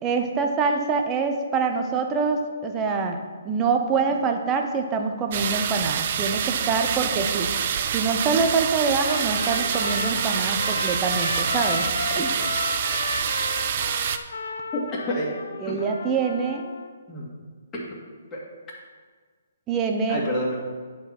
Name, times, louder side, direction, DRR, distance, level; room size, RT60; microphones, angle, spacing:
voice 1, 0.0-3.2 3.4-7.5 7.9-12.3 15.6-16.6 19.7-20.2, right 5 dB, 20° right, 5 dB, 0.8 m, -25 dB
sound 1, 5.3-14.2, right 8 dB, 45° right, 0.5 m, -26 dB
Trumpet, 8.8-16.9, left 4 dB, 80° left, 0.8 m, -32 dB
voice 2, 14.7-15.3 15.7-15.8 17.1-17.3 17.7-18.0 18.3-18.4 20.1-20.6, equal, 15° left, -5 dB, 2.1 m, -28 dB
9.7 x 4.8 x 6.0 m, 1.5 s
hypercardioid pair, 155°, 0 cm